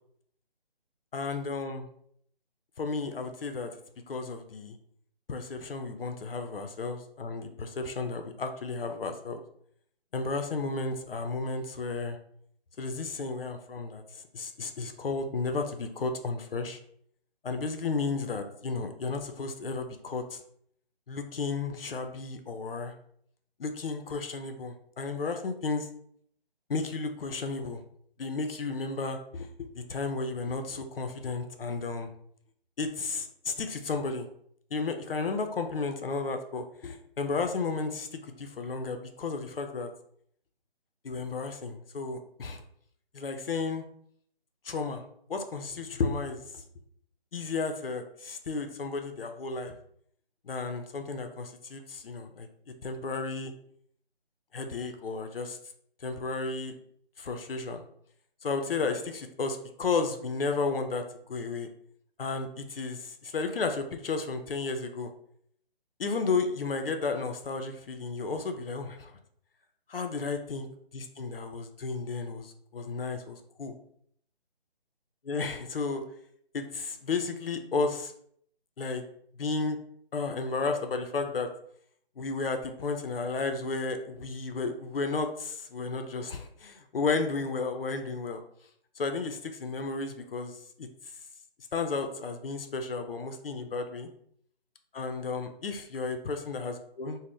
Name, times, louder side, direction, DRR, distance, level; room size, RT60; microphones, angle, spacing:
voice 1, 1.1-1.9 2.8-3.7 4.1-4.8 5.3-9.4 10.1-12.2 12.8-16.8 17.4-20.4 21.1-22.9 23.6-25.9 26.7-27.8 28.2-32.1 32.8-34.3 34.7-39.9 41.0-42.6 43.1-43.8 44.6-45.0 45.3-46.4 47.3-49.7 50.4-52.5 52.8-53.5 54.5-55.6 56.0-56.7 57.2-57.8 58.4-61.7 62.2-65.1 66.0-69.1 69.9-73.7 75.2-76.0 76.5-78.1 78.8-79.0 79.4-79.8 80.1-81.5 82.2-88.4 89.0-90.9 91.7-94.1 94.9-97.2, left 4 dB, 65° left, 6 dB, 0.5 m, -33 dB
2.6 x 2.0 x 3.4 m, 0.66 s
figure-of-eight pair, 155°, 31 cm